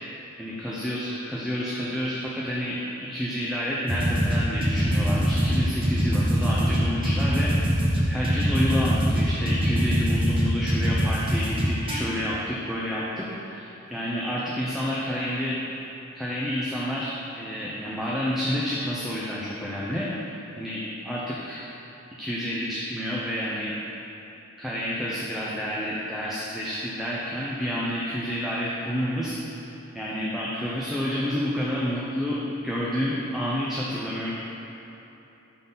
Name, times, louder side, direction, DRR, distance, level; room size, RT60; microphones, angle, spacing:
voice 1, 0.4-7.5 8.1-15.6 16.1-21.6 22.2-23.7 24.6-34.3, equal, ahead, -7 dB, 0.5 m, -29 dB
sound 1, 3.9-12.0, equal, 25° right, 1.0 m, -22 dB
5.6 x 3.8 x 5.5 m, 3.0 s
head